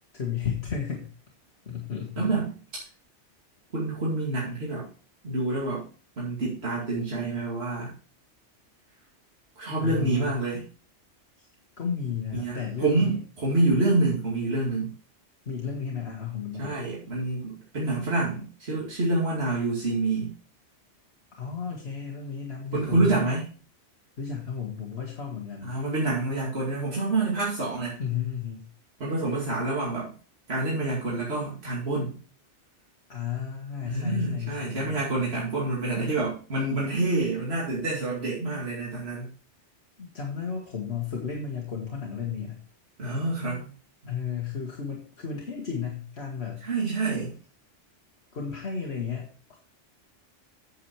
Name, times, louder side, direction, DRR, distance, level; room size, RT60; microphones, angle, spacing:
voice 1, 0.1-1.1 1.7-2.3 9.8-10.4 11.4-11.5 11.8-13.2 15.5-16.8 21.3-23.3 24.2-25.8 28.0-28.7 33.1-35.0 40.0-42.6 44.1-46.6 48.3-49.7, left 7 dB, 60° left, -1 dB, 1.8 m, -33 dB
voice 2, 2.2-2.5 3.7-4.9 5.2-5.9 6.2-7.9 9.6-10.6 12.3-14.9 16.6-20.3 22.7-23.4 25.6-28.0 29.0-30.1 30.5-32.2 33.8-39.3 43.0-43.7 46.6-47.3, right 2 dB, 60° right, -6 dB, 2.8 m, -27 dB
8.5 x 7.8 x 4.7 m, 0.39 s
omnidirectional pair, 1.2 m